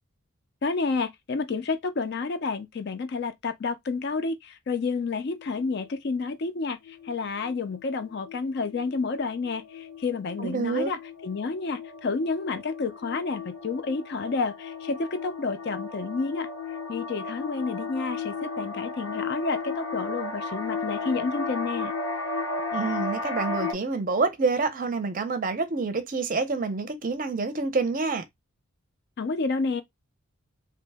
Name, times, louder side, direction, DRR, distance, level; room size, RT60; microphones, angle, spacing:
voice 1, 0.6-16.5 16.9-21.9 29.2-29.8, left 4 dB, 50° left, 0.4 m, -30 dB
sound 1, 5.4-5.9 6.4-6.6 6.9-7.1 7.4-23.7, left 3 dB, 85° left, 0.8 m, -35 dB
voice 2, 10.4-10.9 22.7-28.2, right 4 dB, 40° right, 0.5 m, -27 dB
2.9 x 2.0 x 3.4 m
head